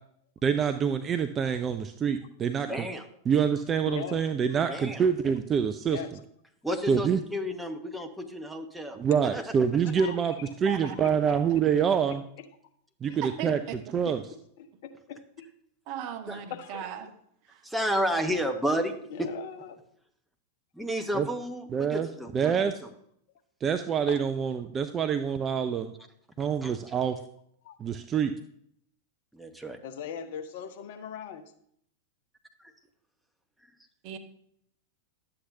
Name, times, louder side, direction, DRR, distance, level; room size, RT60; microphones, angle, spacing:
voice 1, 0.4-2.9 3.3-6.0 6.9-7.2 9.0-10.3 10.6-12.2 13.0-13.6 13.9-14.2 21.1-21.3 21.7-22.1 22.3-22.7 23.6-25.9 26.4-27.2 27.8-28.3, right 7 dB, 25° right, 9 dB, 0.4 m, -26 dB
voice 2, 2.7-3.0 4.7-5.0 6.6-9.0 9.3-9.4 16.3-16.4 17.6-19.3 20.7-22.9 26.6-26.7 29.3-29.8 32.6-32.7, equal, ahead, 4 dB, 1.0 m, -31 dB
voice 3, 3.9-4.2 5.9-6.1 10.0-10.2 10.8-11.4 13.1-13.2 14.6-15.5 16.5-16.8 19.1-19.8 24.1-24.2 27.6-27.8 29.8-31.4, left 8 dB, 50° left, 7 dB, 0.8 m, -39 dB
voice 4, 10.6-11.0 11.3-11.4 13.1-14.1 15.9-17.1 17.5-17.6 34.0-34.2, right 8 dB, 45° right, 7 dB, 0.9 m, -38 dB
11.5 x 7.8 x 2.7 m, 0.69 s
figure-of-eight pair, 90°, 0 cm